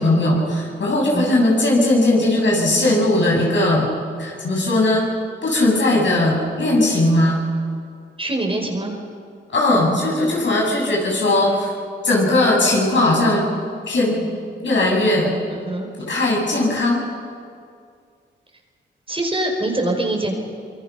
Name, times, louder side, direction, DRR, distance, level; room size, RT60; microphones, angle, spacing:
voice 1, 0.0-3.9 4.2-5.1 5.4-7.4 9.5-11.7 12.0-13.4 13.9-14.3 14.6-15.3 16.1-17.0, left 1 dB, 65° left, -2 dB, 7.4 m, -18 dB
voice 2, 8.2-8.9 15.6-15.9 19.1-20.3, right 2 dB, 25° right, 1 dB, 5.0 m, -23 dB
25.5 x 22.0 x 5.9 m, 2.2 s
supercardioid pair, 50°, 21 cm